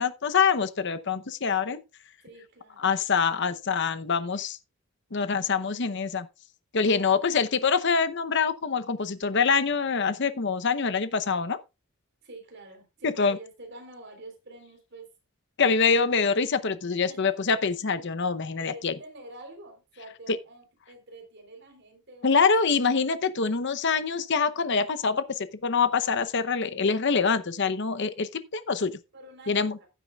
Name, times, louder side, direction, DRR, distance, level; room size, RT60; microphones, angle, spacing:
voice 1, 0.0-1.8 2.8-4.6 5.1-6.3 6.7-11.6 13.0-13.4 15.6-18.9 22.2-28.9 29.5-29.8, left 5 dB, 55° left, 0.8 m, -25 dB
voice 2, 2.2-2.9 12.2-15.1 17.1-17.4 18.5-22.8 29.1-29.9, right 1 dB, 55° right, 3.8 m, -47 dB
15.5 x 8.6 x 2.4 m
head